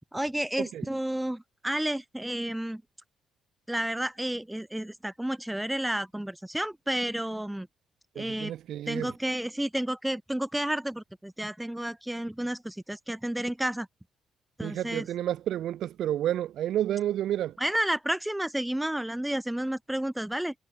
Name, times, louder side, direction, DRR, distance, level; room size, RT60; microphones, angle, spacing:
voice 1, 0.1-2.8 3.7-7.7 8.1-8.5 8.9-13.9 14.6-15.1 17.6-20.5, right 1 dB, 5° right, 6.0 m, -31 dB
voice 2, 8.1-9.1 14.6-17.6, right 12 dB, 75° right, 1.3 m, -30 dB
cardioid pair, 90°, 0 cm